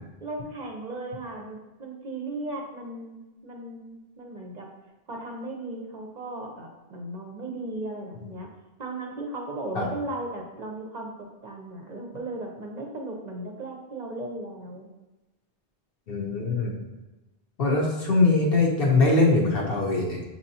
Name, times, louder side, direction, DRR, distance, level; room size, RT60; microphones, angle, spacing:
voice 1, 0.2-4.7 5.1-8.5 8.8-11.1 11.4-14.9, right 2 dB, 50° right, 1 dB, 0.6 m, -36 dB
voice 2, 16.1-16.7 17.6-20.2, left 3 dB, 70° left, -3 dB, 1.0 m, -22 dB
6.5 x 2.9 x 2.7 m, 1.1 s
omnidirectional pair, 1.0 m